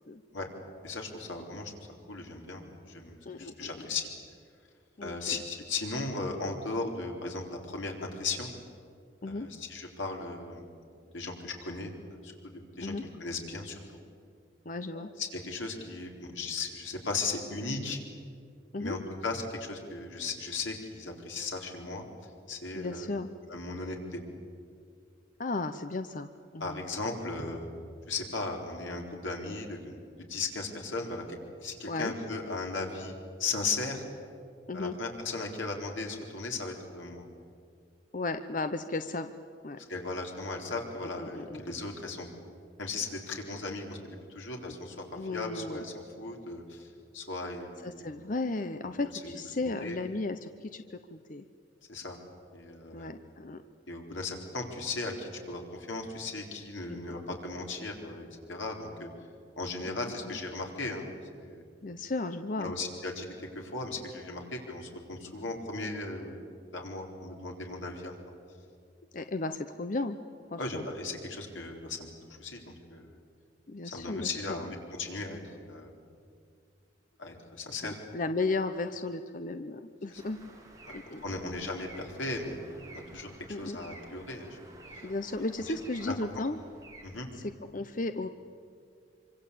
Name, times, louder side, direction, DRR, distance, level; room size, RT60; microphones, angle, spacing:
voice 1, 0.8-1.7 2.1-4.1 5.0-8.5 9.3-10.7 11.1-12.9 13.2-13.8 14.9-18.0 18.8-22.0 22.5-23.1 23.5-24.2 26.6-27.6 28.1-30.0 30.3-31.2 31.6-33.1 33.4-34.0 34.7-37.2 39.9-42.3 42.8-46.9 47.1-48.1 49.2-49.3 49.6-50.0 51.9-52.2 52.5-53.1 53.9-59.1 59.6-61.1 61.3-61.6 62.6-68.2 70.6-73.2 73.9-75.4 75.7-75.9 77.2-78.0 80.1-80.2 80.8-81.0 81.2-82.6 83.1-83.3 83.6-84.6 85.6-85.7 86.0-86.1 87.0-87.3, left 3 dB, 90° left, 1 dB, 4.4 m, -37 dB
voice 2, 3.3-3.9 5.0-5.4 9.2-9.5 12.8-13.0 14.6-15.1 18.7-19.0 22.7-23.3 25.4-26.8 31.9-32.1 34.7-34.9 38.1-39.3 39.6-39.8 41.0-41.6 45.2-45.8 47.8-51.5 52.9-53.6 56.9-57.4 59.8-60.4 61.8-62.8 69.1-70.2 70.5-70.8 73.7-74.6 77.8-80.4 80.9-81.2 83.5-83.8 85.0-86.6 87.3-88.3, left 3 dB, 45° left, 9 dB, 0.8 m, -35 dB
sound 1, 80.1-87.3, right 2 dB, 20° right, 3.7 m, -52 dB
26.0 x 25.0 x 8.6 m, 2.3 s
head